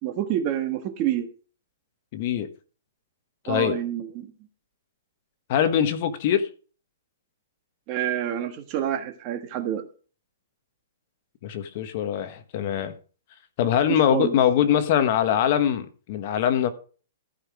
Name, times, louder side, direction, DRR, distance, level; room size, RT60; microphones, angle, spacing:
voice 1, 0.0-1.3 3.5-4.3 7.9-9.8 14.1-14.3, right 10 dB, 25° right, 1.5 m, -28 dB
voice 2, 2.1-2.5 3.4-3.8 5.5-6.5 11.4-12.9 13.6-16.7, left 9 dB, 35° left, 1.2 m, -23 dB
14.0 x 5.6 x 4.9 m
hypercardioid pair, 170°, 0 cm